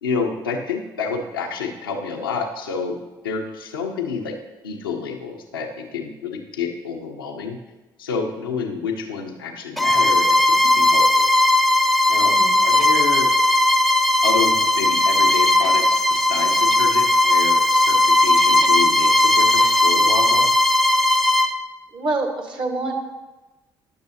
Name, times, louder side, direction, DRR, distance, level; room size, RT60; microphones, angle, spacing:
voice 1, 0.0-3.0 3.2-4.4 4.6-7.6 8.0-11.3 12.1-12.4 12.6-13.3 14.2-20.5, left 5 dB, 90° left, 2 dB, 0.7 m, -29 dB
Bowed string instrument, 9.8-21.6, left 2 dB, ahead, 0.5 m, -17 dB
voice 2, 12.2-12.6 21.9-22.9, right 2 dB, 45° right, 3 dB, 1.5 m, -26 dB
10.5 x 6.6 x 2.7 m, 1.1 s
hypercardioid pair, 50°, 11 cm